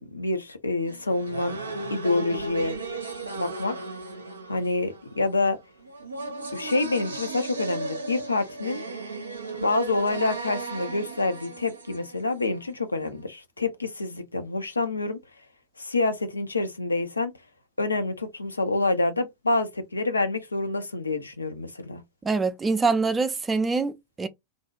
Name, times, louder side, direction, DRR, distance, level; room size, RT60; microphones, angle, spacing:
voice 1, 0.1-1.6 1.9-2.8 3.4-3.8 4.5-5.6 6.5-8.8 9.6-15.2 15.8-17.3 17.8-22.0, left 2 dB, 80° left, 0.5 m, -27 dB
sound 1, 0.9-12.7, right 3 dB, 75° right, 0.5 m, -36 dB
voice 2, 22.2-24.3, right 4 dB, 15° right, 0.3 m, -24 dB
2.5 x 2.1 x 2.3 m
figure-of-eight pair, 90°, 0 cm